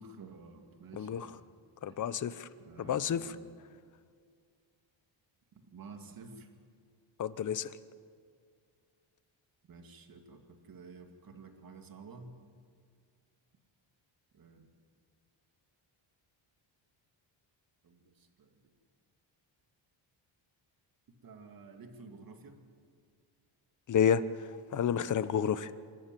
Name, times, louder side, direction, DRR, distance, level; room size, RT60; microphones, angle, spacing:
voice 1, 0.0-1.4 1.9-2.2 2.6-3.4 5.5-6.5 9.6-12.3 14.3-14.7 17.8-18.6 21.2-22.7, right 4 dB, 45° right, 4 dB, 2.4 m, -51 dB
voice 2, 0.9-1.4 1.8-2.5 2.8-3.4 7.2-7.8 23.9-25.7, left 8 dB, 40° left, 15 dB, 0.8 m, -30 dB
27.5 x 13.5 x 9.1 m, 2.1 s
cardioid pair, 135°, 48 cm